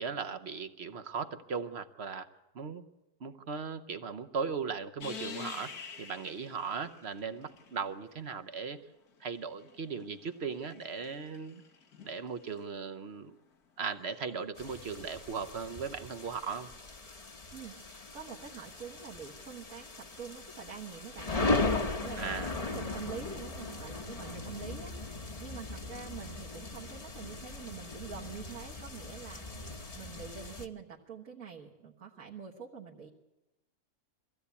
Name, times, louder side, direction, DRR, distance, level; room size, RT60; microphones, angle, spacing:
voice 1, 0.0-2.3 2.5-2.8 3.2-8.8 9.2-11.6 12.0-13.3 13.8-16.7 22.2-22.5, right 5 dB, 50° right, 9 dB, 1.0 m, -38 dB
sound 1, 5.0-8.1 9.2-12.7 15.0-15.1, left 7 dB, 85° left, 1.8 m, -48 dB
sound 2, 14.6-30.7, left 3 dB, 30° left, 1.0 m, -38 dB
voice 2, 17.5-33.1, right 6 dB, 65° right, -2 dB, 1.9 m, -46 dB
23.0 x 16.0 x 8.4 m, 1.0 s
omnidirectional pair, 1.6 m